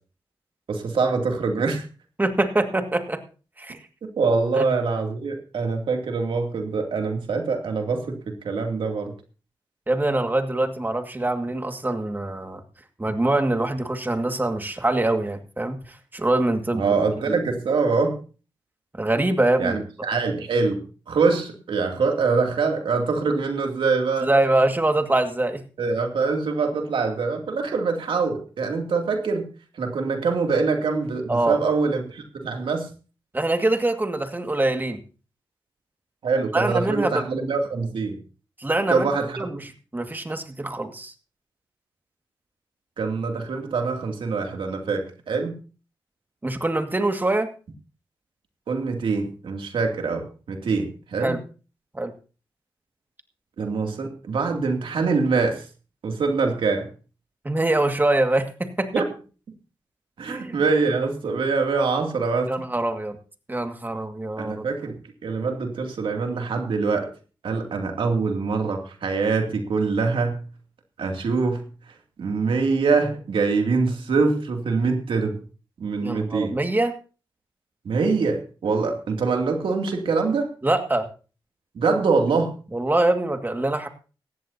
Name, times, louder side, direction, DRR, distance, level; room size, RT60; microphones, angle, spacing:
voice 1, 0.7-1.8 4.2-9.1 16.7-18.2 19.6-24.3 25.8-29.5 29.7-32.9 36.2-38.2 38.9-39.5 43.0-45.5 48.7-51.4 53.6-55.6 56.0-56.9 58.9-59.1 60.2-62.7 64.4-67.1 67.4-70.4 71.0-71.7 72.2-75.4 75.8-76.6 77.8-80.5 81.7-82.5, right 4 dB, 80° right, 3 dB, 2.6 m, -24 dB
voice 2, 2.2-3.2 3.6-3.8 4.6-4.7 9.9-12.6 13.0-15.8 16.1-16.9 17.3-17.4 19.0-19.8 24.2-25.6 31.3-31.6 33.3-35.0 36.5-37.2 38.6-39.1 39.4-41.1 46.4-47.5 51.2-51.4 51.9-52.1 57.4-59.0 60.3-60.6 62.5-63.2 63.5-64.7 76.0-77.0 80.6-81.1 82.7-83.9, right 2 dB, 20° right, 6 dB, 2.0 m, -24 dB
17.5 x 14.0 x 2.8 m, 0.36 s
cardioid pair, 70°, 9 cm